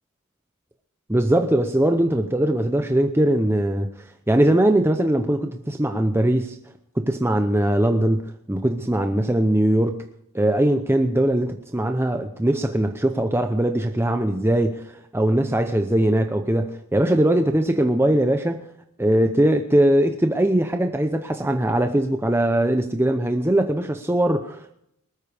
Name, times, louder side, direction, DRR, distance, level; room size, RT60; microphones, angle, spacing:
voice 1, 1.1-3.9 4.3-6.6 7.0-10.1 10.3-18.6 19.0-24.7, right 1 dB, 10° right, 6 dB, 0.7 m, -21 dB
20.5 x 13.5 x 3.5 m, 0.75 s
head